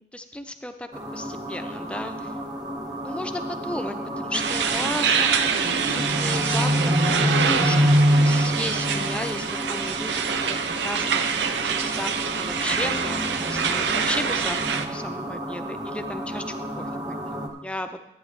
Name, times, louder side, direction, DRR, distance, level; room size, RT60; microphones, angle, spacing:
voice 1, 0.1-2.3 3.0-14.6 14.9-17.2 17.6-18.0, left 1 dB, 5° left, 7 dB, 0.5 m, -34 dB
sound 1, 0.9-17.5, equal, 25° right, 1.3 m, -27 dB
sound 2, 4.3-14.9, right 6 dB, 75° right, 0.6 m, -26 dB
14.0 x 9.3 x 3.3 m, 0.88 s
head